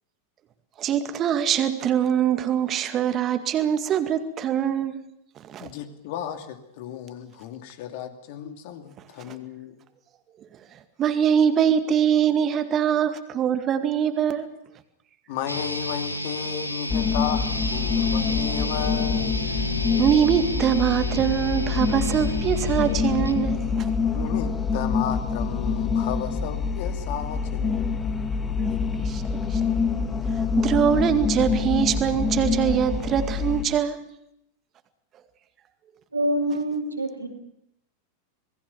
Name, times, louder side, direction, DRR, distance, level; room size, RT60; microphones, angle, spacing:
voice 1, 0.8-5.0 5.4-5.7 9.3-9.4 11.0-14.5 20.0-23.9 29.0-29.2 29.5-29.6 30.3-34.1, right 9 dB, 30° right, 9 dB, 2.1 m, -23 dB
voice 2, 5.6-9.8 15.3-19.4 24.1-28.0, left 9 dB, 50° left, 7 dB, 2.7 m, -34 dB
sound 1, 15.5-23.5, left 2 dB, 85° left, 1.9 m, -31 dB
sound 2, 16.9-33.6, left 5 dB, 15° left, 2.3 m, -26 dB
voice 3, 36.1-37.3, right 1 dB, 80° right, 3 dB, 4.7 m, -25 dB
27.0 x 20.5 x 7.1 m, 0.78 s
figure-of-eight pair, 90°, 0 cm